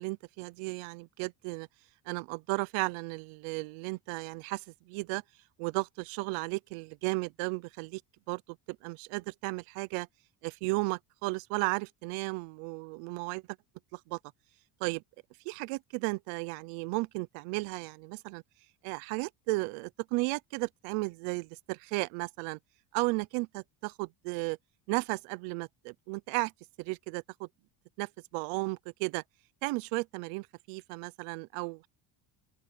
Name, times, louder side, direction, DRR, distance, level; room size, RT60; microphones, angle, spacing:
voice 1, 0.0-1.7 2.1-5.2 5.6-8.0 8.3-10.1 10.4-13.4 13.9-14.2 14.8-15.0 15.4-18.4 18.8-22.6 22.9-24.6 24.9-26.5 26.8-27.5 28.0-29.2 29.6-31.9, right 25 dB, 85° right, 0.8 m, -34 dB
open air
cardioid pair, 140°, 49 cm